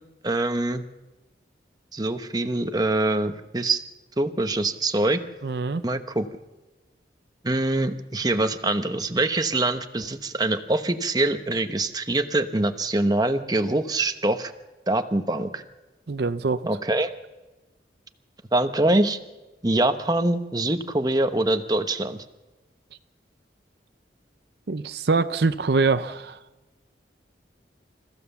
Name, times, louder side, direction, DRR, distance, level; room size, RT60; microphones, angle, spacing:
voice 1, 0.2-0.8 1.9-3.8 4.2-5.2 5.8-6.3 7.4-14.5 14.9-15.6 16.7-17.1 18.5-19.2 19.6-22.2, right 2 dB, 20° right, 8 dB, 1.0 m, -24 dB
voice 2, 5.4-5.8 16.1-16.7 24.7-26.4, right 4 dB, 65° right, 10 dB, 0.6 m, -24 dB
26.5 x 15.0 x 7.1 m, 1.1 s
head